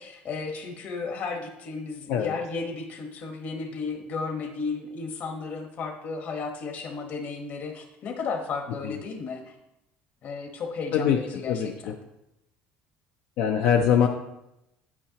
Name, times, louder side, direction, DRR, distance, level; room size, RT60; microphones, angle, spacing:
voice 1, 0.0-9.5 10.2-11.9, left 4 dB, 45° left, 4 dB, 1.2 m, -34 dB
voice 2, 10.9-11.9 13.4-14.1, left 8 dB, 65° left, 3 dB, 0.6 m, -23 dB
9.5 x 8.6 x 2.9 m, 0.89 s
cardioid pair, 155°, 4 cm